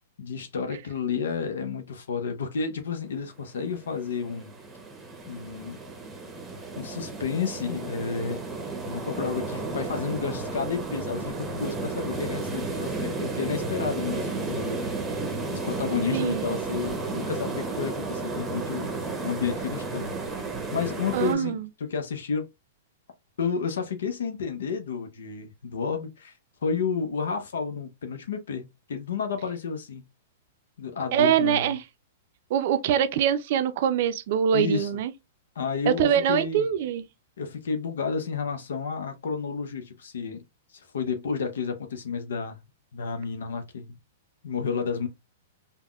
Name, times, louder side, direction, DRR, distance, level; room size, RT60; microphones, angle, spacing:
voice 1, 0.2-4.5 5.3-5.8 6.8-8.4 8.9-14.8 15.5-18.9 19.2-20.4 20.7-22.5 23.4-26.3 26.6-30.0 30.8-31.8 34.5-34.9 35.6-36.7 37.4-40.4 40.7-42.6 42.9-43.9 44.4-45.1, left 5 dB, 80° left, 0.6 m, -31 dB
sound 1, 3.6-21.3, right 3 dB, 10° right, 0.7 m, -33 dB
voice 2, 16.1-16.5 21.1-21.7 31.1-31.8 32.5-35.1 35.9-37.1, right 9 dB, 55° right, 0.4 m, -24 dB
3.4 x 2.1 x 2.3 m
hypercardioid pair, 130°, 0 cm